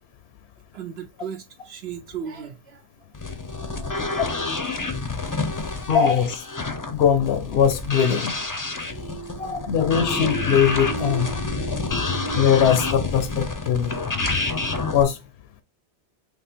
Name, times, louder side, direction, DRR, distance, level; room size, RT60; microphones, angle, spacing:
voice 1, 0.7-3.1 3.5-4.2 5.5-5.8 8.8-9.5 11.0-11.1 11.7-11.9, right 8 dB, 70° right, 0.9 m, -39 dB
sound 1, 3.1-15.0, left 3 dB, 25° left, 0.5 m, -28 dB
voice 2, 5.9-6.4 6.9-8.3 9.4-11.3 11.7-11.8 12.3-13.9 14.9-15.2, left 8 dB, 70° left, 0.8 m, -21 dB
sound 2, 8.7-14.4, right 5 dB, 15° right, 0.7 m, -37 dB
3.9 x 3.1 x 4.4 m
omnidirectional pair, 1.1 m